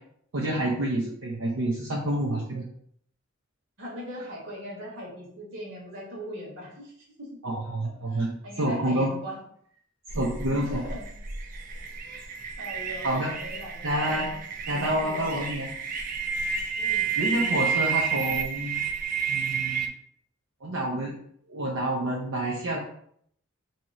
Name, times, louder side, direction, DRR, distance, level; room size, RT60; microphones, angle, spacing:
voice 1, 0.3-2.7 7.4-9.1 10.1-10.8 13.0-13.4 13.8-14.3 14.7-15.7 17.2-18.8 19.3-19.9 20.6-21.1 21.5-22.8, right 1 dB, 90° right, -4 dB, 0.6 m, -28 dB
voice 2, 3.8-6.9 7.2-7.3 8.1-9.4 10.6-11.0 12.0-12.2 12.6-14.4 14.7-15.4 16.8-17.1, equal, 70° right, -3 dB, 1.4 m, -39 dB
sound 1, 10.1-19.9, right 6 dB, 45° right, 0.4 m, -30 dB
3.0 x 2.8 x 3.7 m, 0.66 s
head